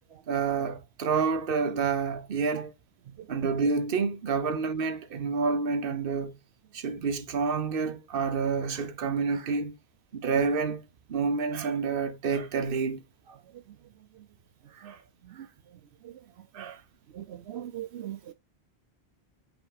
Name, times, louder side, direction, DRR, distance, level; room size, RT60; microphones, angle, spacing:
voice 1, 0.3-2.7 3.3-6.4 6.7-9.7 10.1-13.0 13.3-13.4 14.7-15.0 16.5-16.8, right 5 dB, 60° right, 1.0 m, -29 dB
voice 2, 17.2-18.2, right 12 dB, 80° right, 0.9 m, -38 dB
5.6 x 3.6 x 4.8 m
omnidirectional pair, 1.1 m